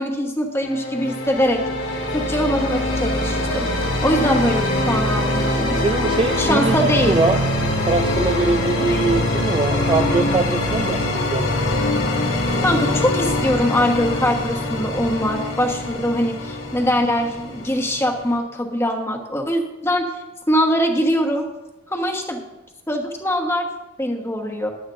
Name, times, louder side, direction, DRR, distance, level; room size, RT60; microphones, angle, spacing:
voice 1, 0.0-1.6 2.1-3.7 4.0-5.8 6.4-7.2 8.8-9.1 12.6-20.1 20.5-21.5 21.9-22.4 22.9-23.7 24.0-24.7, equal, 10° left, 3 dB, 1.1 m, -22 dB
sound 1, 0.6-18.4, left 1 dB, 90° left, 3.2 m, -23 dB
voice 2, 5.7-7.4 7.8-11.5, right 3 dB, 25° right, 6 dB, 0.3 m, -22 dB
15.0 x 11.0 x 2.6 m, 1.0 s
head